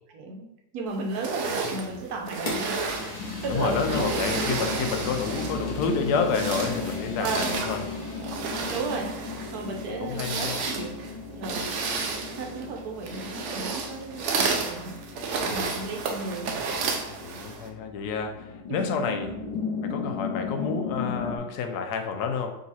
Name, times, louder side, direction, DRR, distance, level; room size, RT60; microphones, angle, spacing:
voice 1, 0.1-0.5 0.7-2.8 3.0-4.1 7.2-7.5 8.7-9.1 9.5-11.0 11.3-11.7 12.4-16.5 18.7-19.1, right 3 dB, 65° right, 1 dB, 1.2 m, -34 dB
sound 1, 1.1-5.7 6.1-17.7, right 4 dB, 85° right, 0.6 m, -32 dB
sound 2, 1.8-21.4, left 4 dB, 90° left, 1.4 m, -36 dB
Fire, 2.5-8.4, left 1 dB, 30° left, 0.9 m, -41 dB
voice 2, 3.5-7.8 9.8-10.6 17.1-19.3 19.8-22.6, left 5 dB, 75° left, 5 dB, 1.0 m, -29 dB
3.9 x 2.8 x 4.0 m, 0.88 s
omnidirectional pair, 1.9 m